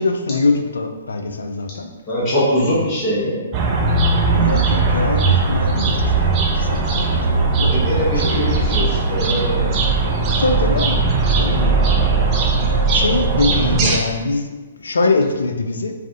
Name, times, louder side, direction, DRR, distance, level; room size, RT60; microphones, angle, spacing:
voice 1, 0.0-1.9 2.7-2.9 4.3-6.3 6.5-8.8 10.4-11.9 12.6-15.9, left 3 dB, 75° left, 5 dB, 0.3 m, -23 dB
voice 2, 2.1-3.4 7.7-9.8, equal, 35° left, -8 dB, 1.2 m, -22 dB
sound 1, 3.5-14.0, right 3 dB, 30° right, 0.5 m, -18 dB
3.4 x 2.4 x 2.4 m, 1.3 s
figure-of-eight pair, 125°, 0 cm